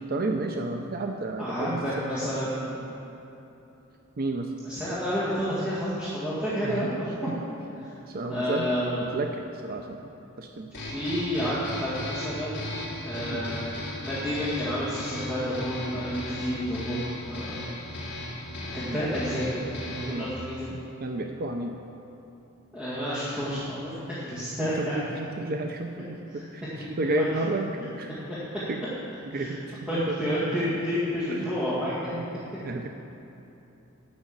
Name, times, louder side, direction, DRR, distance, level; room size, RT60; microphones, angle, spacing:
voice 1, 0.1-2.1 4.2-4.5 6.6-6.9 8.1-8.7 9.0-10.0 10.4-10.7 13.3-13.4 18.8-19.0 20.1-20.3 20.7-21.7 24.6-26.6 27.0-27.7 28.0-28.1 28.7-28.8 29.3-30.0 31.3-31.5 32.1-32.2 32.6-32.9, right 2 dB, 45° right, 4 dB, 0.5 m, -31 dB
voice 2, 1.4-2.9 4.6-7.1 7.8-7.9 8.3-9.0 10.7-12.7 13.0-13.6 14.0-17.9 18.7-20.8 22.7-25.0 26.3-26.4 26.8-27.3 28.3-28.4 29.3-29.5 29.9-32.2, equal, 5° right, -12 dB, 2.0 m, -30 dB
sound 1, 10.7-20.3, left 1 dB, 55° left, 2.8 m, -36 dB
11.5 x 6.1 x 7.5 m, 3.0 s
head